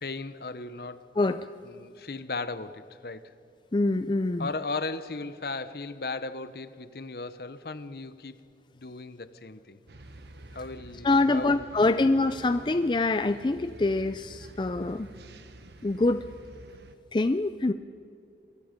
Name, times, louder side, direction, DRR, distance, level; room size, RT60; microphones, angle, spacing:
voice 1, 0.0-1.1 1.6-3.3 4.4-8.4 8.7-9.8 10.5-12.1, left 3 dB, 60° left, 0.9 m, -37 dB
voice 2, 1.2-1.5 3.7-4.5 11.0-15.1 15.8-16.2 17.1-17.7, left 2 dB, 25° left, 0.4 m, -25 dB
sound 1, 9.9-16.9, right 2 dB, 70° right, 1.1 m, -48 dB
26.0 x 22.5 x 5.2 m
head